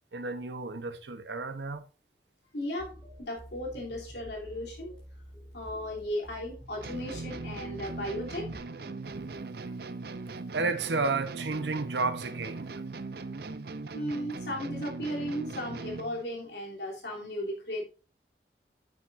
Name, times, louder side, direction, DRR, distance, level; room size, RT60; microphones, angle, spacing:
voice 1, 0.1-1.9 8.9-9.3 10.5-12.7, right 3 dB, 90° right, 1.0 m, -32 dB
voice 2, 2.5-5.0 5.5-8.5 13.9-17.9, equal, 80° left, 3.2 m, -36 dB
sound 1, 2.8-8.6, equal, 10° left, 5.3 m, -48 dB
sound 2, 6.8-16.2, right 3 dB, 65° right, 0.6 m, -39 dB
9.2 x 8.1 x 2.6 m
head